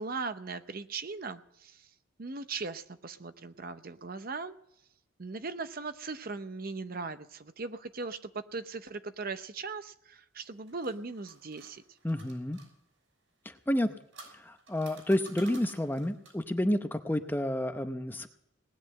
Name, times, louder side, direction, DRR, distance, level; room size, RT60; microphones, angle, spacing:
voice 1, 0.0-1.9 2.2-4.5 5.2-11.8, right 4 dB, 45° right, 10 dB, 0.7 m, -39 dB
sound 1, 10.4-12.7 13.7-16.5, right 3 dB, 70° right, 6.2 m, -53 dB
voice 2, 12.0-12.6 13.7-13.9 14.5-18.3, left 1 dB, 10° left, 8 dB, 0.7 m, -30 dB
19.0 x 9.9 x 7.6 m, 0.79 s
head